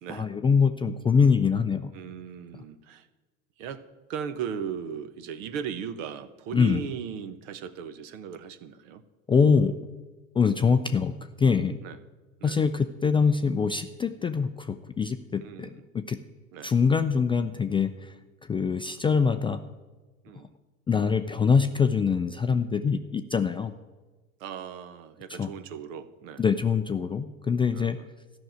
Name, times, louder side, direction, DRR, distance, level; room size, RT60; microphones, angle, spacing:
voice 1, 0.1-1.9 6.5-6.8 9.3-9.8 10.3-11.8 12.4-16.2 16.6-18.1 18.4-19.6 20.9-23.7 25.4-25.5 26.4-28.0, left 5 dB, 15° left, 8 dB, 0.4 m, -24 dB
voice 2, 1.9-3.1 3.6-3.8 4.1-9.0 11.8-12.0 12.4-12.6 15.4-15.8 16.5-16.7 20.2-20.5 24.4-26.4 27.7-28.1, right 7 dB, 60° right, 13 dB, 1.1 m, -37 dB
13.5 x 6.3 x 9.1 m, 1.2 s
hypercardioid pair, 85°, 42 cm